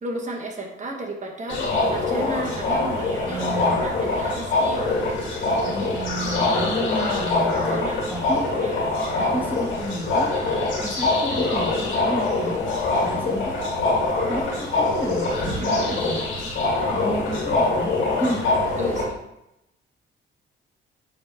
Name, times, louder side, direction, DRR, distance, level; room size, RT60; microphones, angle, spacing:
voice 1, 0.0-3.5 3.8-5.0 7.2-8.0 8.5-9.1 15.6-16.0 18.8-19.2, right 1 dB, 35° right, 0 dB, 1.4 m, -34 dB
sound 1, 1.5-19.1, left 2 dB, 80° left, 2.6 m, -24 dB
voice 2, 3.3-3.8 5.7-8.5 9.2-10.3 10.8-12.6 13.0-13.8 14.3-16.2 16.9-17.9 18.2-18.4, equal, 10° right, -3 dB, 2.1 m, -31 dB
8.7 x 3.5 x 3.7 m, 0.84 s
cardioid pair, 90°, 20 cm